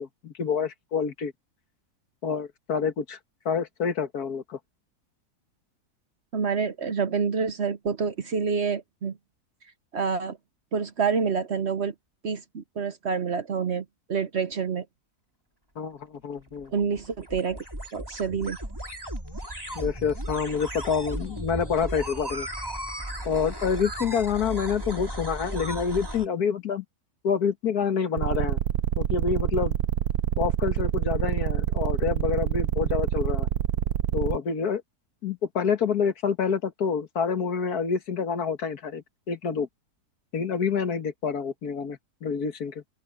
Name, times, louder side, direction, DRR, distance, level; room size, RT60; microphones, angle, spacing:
voice 1, 0.0-1.3 2.2-3.2 3.5-4.6 15.8-16.7 19.8-22.5 23.3-26.8 27.2-28.6 29.0-29.8 30.4-33.5 34.1-34.8 35.2-39.7 40.3-43.0, left 6 dB, 75° left, 2.0 m, -27 dB
voice 2, 6.3-9.2 9.9-10.4 10.7-11.9 12.2-14.8 16.7-17.6 17.9-18.6, right 5 dB, 50° right, 1.0 m, -27 dB
sound 1, 16.4-26.3, right 1 dB, 15° right, 4.4 m, -35 dB
sound 2, 28.2-34.4, right 11 dB, 75° right, 1.2 m, -26 dB
open air
omnidirectional pair, 1.7 m